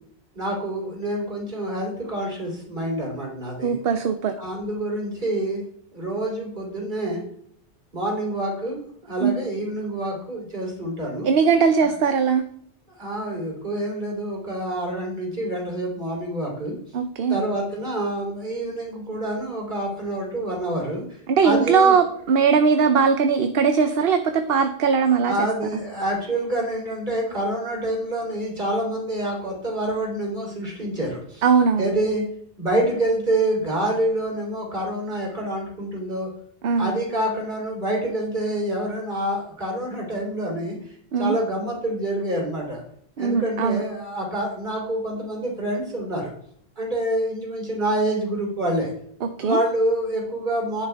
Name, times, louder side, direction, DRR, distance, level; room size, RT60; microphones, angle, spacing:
voice 1, 0.3-3.8 4.4-5.6 5.9-7.2 7.9-8.8 9.0-11.3 11.8-11.9 13.0-16.8 17.3-21.0 21.4-22.0 25.2-31.4 31.8-32.3 32.6-36.3 36.8-40.8 41.2-42.8 43.2-46.3 46.8-48.9 49.4-50.9, right 1 dB, 45° right, -1 dB, 3.7 m, -27 dB
voice 2, 3.6-4.3 9.2-9.3 11.2-12.4 16.9-17.4 21.3-25.5 31.4-31.8 36.6-36.9 41.1-41.3 43.2-43.8 49.2-49.6, right 6 dB, 65° right, 8 dB, 0.9 m, -20 dB
10.0 x 10.0 x 3.5 m, 0.67 s
omnidirectional pair, 1.1 m